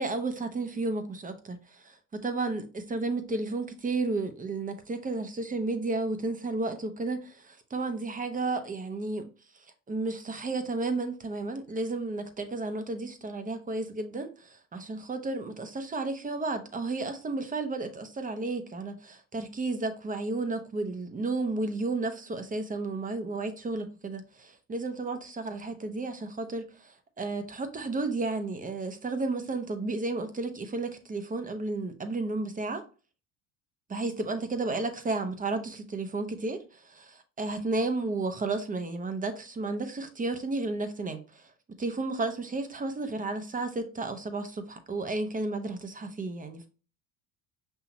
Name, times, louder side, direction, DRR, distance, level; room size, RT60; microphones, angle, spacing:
voice 1, 0.0-9.2 9.9-32.8 33.9-41.4 41.8-46.7, right 3 dB, 25° right, 0.9 m, -32 dB
5.6 x 2.9 x 2.8 m
supercardioid pair, 95°, 35 cm